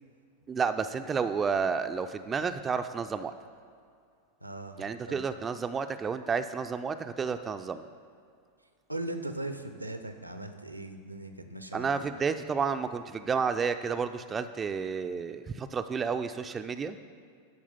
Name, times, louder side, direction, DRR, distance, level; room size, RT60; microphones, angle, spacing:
voice 1, 0.5-3.3 4.8-7.8 11.7-17.0, right 5 dB, 20° right, 9 dB, 0.4 m, -31 dB
voice 2, 4.4-5.2 8.9-12.1, right 1 dB, 85° right, 8 dB, 0.7 m, -39 dB
12.0 x 4.7 x 5.5 m, 2.2 s
figure-of-eight pair, 90°, 0 cm